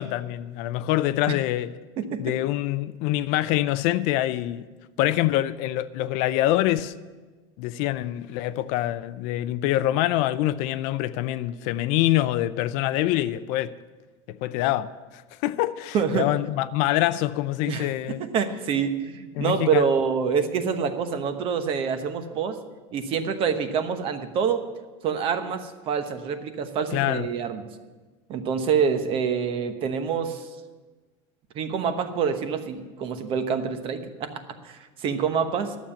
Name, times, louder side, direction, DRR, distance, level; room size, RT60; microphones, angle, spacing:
voice 1, 0.0-1.7 2.2-4.6 5.0-6.9 7.6-13.7 14.3-14.9 15.4-18.2 19.4-19.9 26.9-27.3, left 14 dB, 60° left, 0.5 m, -25 dB
voice 2, 2.0-2.3 15.9-16.3 17.7-22.6 22.9-24.6 25.0-27.6 28.3-30.5 31.5-35.8, right 6 dB, 40° right, 1.1 m, -26 dB
12.0 x 7.3 x 8.7 m
cardioid pair, 155°, 14 cm